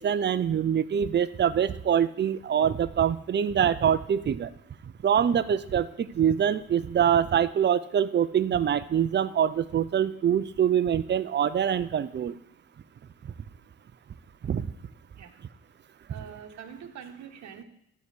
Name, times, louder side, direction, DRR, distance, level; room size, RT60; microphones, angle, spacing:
voice 1, 0.0-4.5 5.0-12.3 14.4-14.7 16.2-16.3, right 8 dB, 35° right, 14 dB, 0.6 m, -24 dB
voice 2, 16.1-17.6, right 8 dB, 65° right, 5 dB, 1.5 m, -44 dB
12.5 x 4.7 x 8.4 m, 0.77 s
cardioid pair, 90°, 30 cm